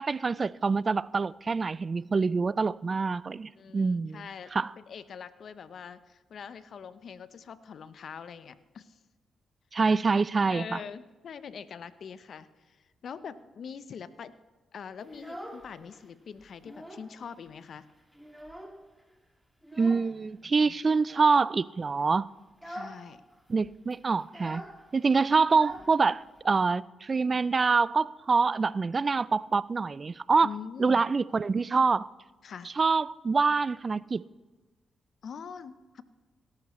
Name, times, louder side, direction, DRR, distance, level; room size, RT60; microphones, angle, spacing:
voice 1, 0.0-4.7 9.7-10.8 19.7-22.3 23.5-24.6 24.9-30.5 30.8-32.1 32.8-34.2, right 4 dB, 45° right, 0.3 m, -26 dB
voice 2, 3.6-4.5 4.9-8.9 10.5-12.8 13.0-14.3 14.7-17.8 20.4-20.7 22.7-23.2 30.4-31.1 32.4-32.7 35.2-36.0, left 6 dB, 65° left, 0.6 m, -43 dB
Child speech kid speaking, 15.0-16.0 16.4-17.2 17.5-17.6 17.9-19.0 19.6-20.1 21.0-21.5 21.9-22.1 22.5-23.0 23.3-23.4 23.6-26.4, equal, 5° right, 2.1 m, -45 dB
17.5 x 11.5 x 3.1 m
supercardioid pair, 50°, 0 cm